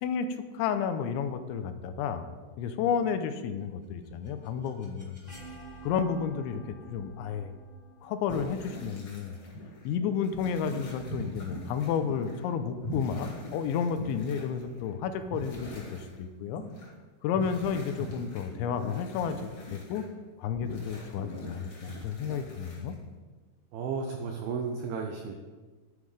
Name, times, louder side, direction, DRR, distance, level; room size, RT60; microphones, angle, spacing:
voice 1, 0.0-2.2 2.6-5.2 5.8-7.5 8.0-9.3 9.8-16.6 17.2-20.1 20.4-23.0, left 7 dB, 90° left, 9 dB, 3.0 m, -31 dB
sound 1, 3.8-9.7, right 3 dB, 10° left, 2.0 m, -50 dB
sound 2, 8.3-12.5 12.8-14.9 15.2-16.1 16.4-16.9 17.3-20.0 20.5-23.1, equal, 45° left, 1.9 m, -42 dB
voice 2, 23.7-25.4, right 5 dB, 75° right, 3 dB, 2.3 m, -33 dB
11.5 x 9.6 x 5.0 m, 1.3 s
omnidirectional pair, 5.3 m